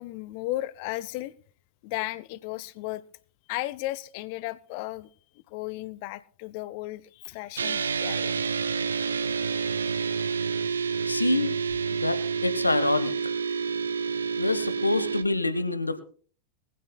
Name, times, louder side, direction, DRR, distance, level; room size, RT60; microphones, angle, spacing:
voice 1, 0.0-1.3 1.8-3.0 3.5-5.1 5.5-8.4, left 17 dB, 45° left, 18 dB, 0.6 m, -35 dB
sound 1, 7.6-15.2, right 6 dB, 70° right, 0.6 m, -28 dB
voice 2, 11.0-11.6 11.9-13.3 14.4-16.0, left 2 dB, 85° left, 13 dB, 1.0 m, -26 dB
21.0 x 15.5 x 2.2 m, 0.43 s
figure-of-eight pair, 90°, 0 cm